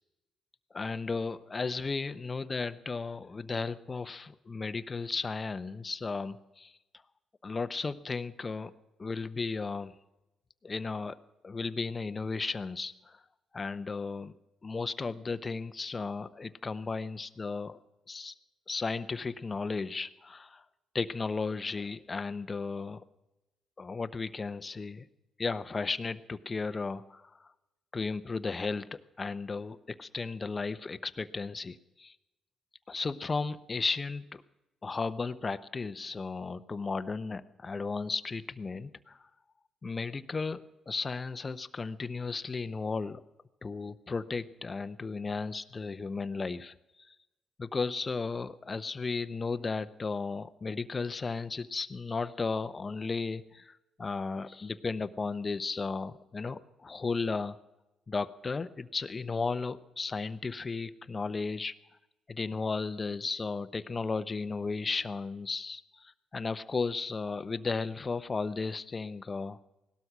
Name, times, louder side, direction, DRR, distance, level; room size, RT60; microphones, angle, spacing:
voice 1, 0.7-6.7 7.4-8.7 9.0-9.9 10.6-11.2 11.4-13.2 13.5-14.3 14.6-17.8 18.1-18.3 18.7-20.6 20.9-23.0 23.8-25.1 25.4-27.3 27.9-32.1 32.9-34.4 34.8-39.2 39.8-43.2 43.6-46.7 47.1-47.2 47.6-57.6 58.1-61.7 62.3-69.6, left 4 dB, 30° left, 13 dB, 0.7 m, -35 dB
18.0 x 12.5 x 6.0 m, 1.0 s
cardioid pair, 90°, 0 cm